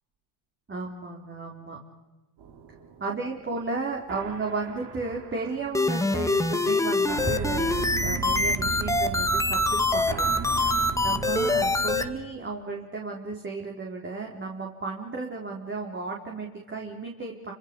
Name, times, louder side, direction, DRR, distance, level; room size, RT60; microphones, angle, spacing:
voice 1, 0.7-1.8 3.0-10.3 10.6-17.5, right 3 dB, 25° right, -1 dB, 4.2 m, -34 dB
sound 1, 2.4-12.1, right 6 dB, 55° right, 5.1 m, -36 dB
sound 2, 5.7-12.0, left 2 dB, 5° left, 1.8 m, -24 dB
29.5 x 26.0 x 5.5 m, 1.2 s
supercardioid pair, 90°, 49 cm